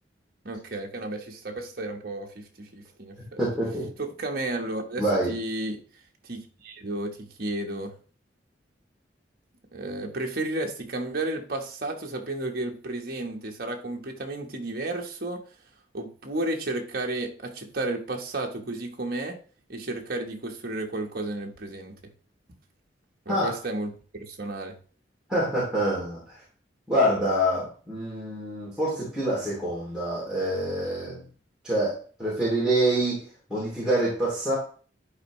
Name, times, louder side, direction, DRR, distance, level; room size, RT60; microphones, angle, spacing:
voice 1, 0.4-3.4 4.0-5.8 6.2-8.0 9.7-15.4 15.9-19.4 19.7-22.1 23.2-23.9 24.2-24.8, right 2 dB, 55° right, 1.2 m, -32 dB
voice 2, 3.4-3.9 5.0-5.3 23.3-23.5 25.3-26.3 26.9-31.2 31.6-31.9 32.2-33.2 33.5-34.5, right 1 dB, 5° right, 2.6 m, -26 dB
10.5 x 4.6 x 3.1 m
head